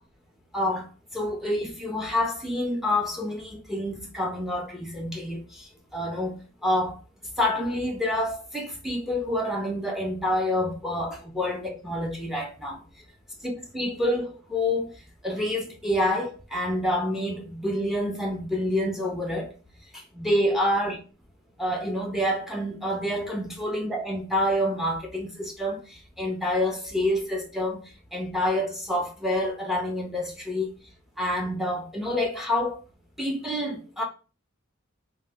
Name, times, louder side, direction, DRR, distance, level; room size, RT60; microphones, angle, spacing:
voice 1, 0.5-6.9 7.4-12.8 13.4-14.9 15.2-19.5 19.9-21.0 21.6-27.8 28.1-30.7 31.2-32.8 33.2-34.0, left 1 dB, ahead, 0.5 m, -28 dB
3.1 x 2.2 x 3.4 m
head